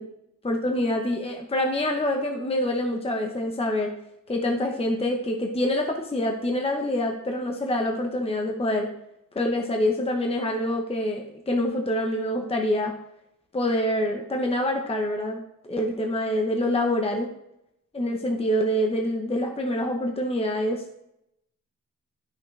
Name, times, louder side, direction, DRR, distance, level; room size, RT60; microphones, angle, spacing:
voice 1, 0.4-3.9 4.3-8.9 9.3-12.9 13.5-15.4 15.7-17.3 17.9-20.8, left 1 dB, 20° left, 2 dB, 0.8 m, -26 dB
11.0 x 6.1 x 3.2 m, 0.81 s
wide cardioid pair, 170°, 32 cm